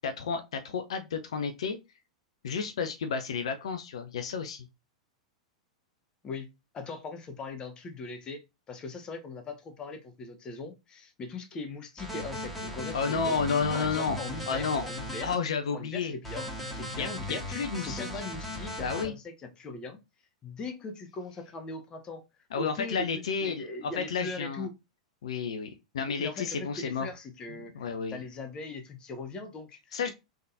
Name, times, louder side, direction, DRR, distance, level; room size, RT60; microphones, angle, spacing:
voice 1, 0.0-1.8 2.4-4.7 12.9-14.2 14.5-14.8 15.2-16.1 16.9-18.2 18.8-19.1 22.5-24.7 25.2-27.1 27.7-28.2 29.9-30.1, left 5 dB, 65° left, 0.5 m, -31 dB
voice 2, 6.2-8.4 8.7-13.3 13.7-15.3 15.7-17.4 17.8-20.0 20.4-22.2 22.5-23.1 23.4-24.7 26.0-30.1, left 3 dB, 25° left, 0.9 m, -40 dB
sound 1, 12.0-15.3 16.2-19.0, equal, 5° left, 1.9 m, -37 dB
3.6 x 3.5 x 2.7 m
figure-of-eight pair, 95°, 3 cm